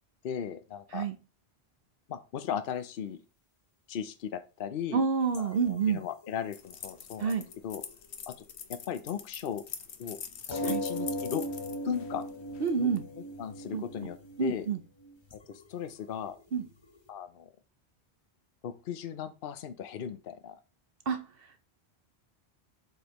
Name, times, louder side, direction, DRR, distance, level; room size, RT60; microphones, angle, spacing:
voice 1, 0.2-1.1 2.1-3.2 3.9-5.1 5.4-7.3 7.6-7.8 8.3-8.4 8.7-9.6 10.0-10.2 10.5-11.4 11.8-12.2 12.8-12.9 13.2-14.7 15.5-16.4 17.1-17.5 18.6-20.6, left 8 dB, 60° left, 0.8 m, -37 dB
voice 2, 4.9-6.0 7.2-7.4 10.6-10.8 12.6-13.0 13.7-13.8 14.4-14.8 16.5-16.7 21.1-21.3, right 6 dB, 60° right, 1.0 m, -28 dB
sound 1, 5.3-7.0 7.5-8.7 8.9-9.0 9.5-9.6 10.3-17.1, equal, 25° left, 0.9 m, -39 dB
sound 2, 6.5-12.8, left 7 dB, 90° left, 1.1 m, -43 dB
7.8 x 5.3 x 3.0 m
omnidirectional pair, 1.1 m